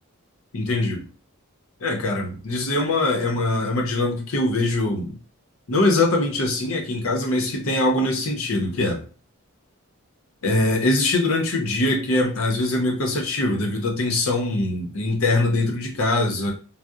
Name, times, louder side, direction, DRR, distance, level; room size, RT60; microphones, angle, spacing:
voice 1, 0.5-1.0 1.8-5.2 5.7-9.0 10.4-16.5, left 2 dB, 70° left, 1 dB, 0.7 m, -22 dB
2.7 x 2.0 x 2.3 m, 0.38 s
head